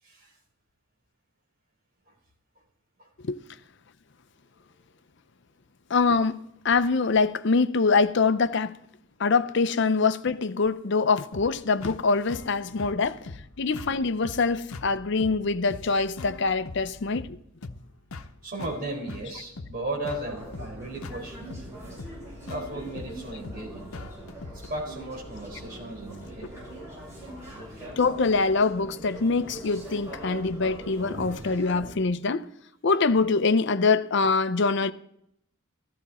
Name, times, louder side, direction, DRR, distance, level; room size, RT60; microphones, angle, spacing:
voice 1, 5.9-6.4 6.6-8.7 9.2-13.2 13.6-17.4 28.0-32.5 32.8-34.9, left 4 dB, 55° left, 0.6 m, -24 dB
sound 1, 11.3-24.7, left 3 dB, 90° left, 0.8 m, -42 dB
voice 2, 18.4-21.5 22.5-24.1 24.7-26.5 27.2-27.3 27.7-27.9 34.6-34.7, right 2 dB, 40° right, 4.4 m, -36 dB
sound 2, 20.1-31.9, right 1 dB, 15° right, 7.3 m, -42 dB
15.0 x 14.0 x 4.2 m
head